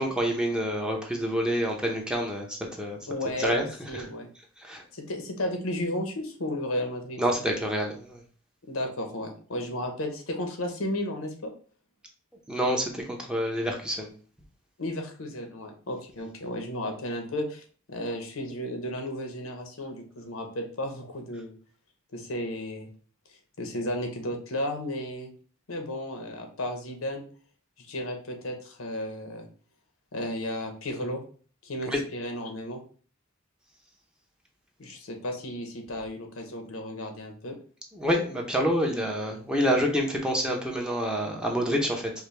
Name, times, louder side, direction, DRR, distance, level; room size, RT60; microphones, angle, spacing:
voice 1, 0.0-3.0 3.4-3.6 3.9-4.0 4.6-4.8 7.2-8.2 12.5-14.1 31.9-32.0 37.9-42.1, equal, 5° right, 0 dB, 0.6 m, -27 dB
voice 2, 3.1-4.3 4.9-7.2 8.7-11.5 14.8-21.5 22.1-22.9 23.6-25.3 25.7-27.2 27.8-29.5 30.1-31.2 31.6-32.8 34.8-37.6, left 1 dB, 85° left, 4 dB, 0.9 m, -33 dB
4.9 x 2.2 x 3.2 m, 0.42 s
head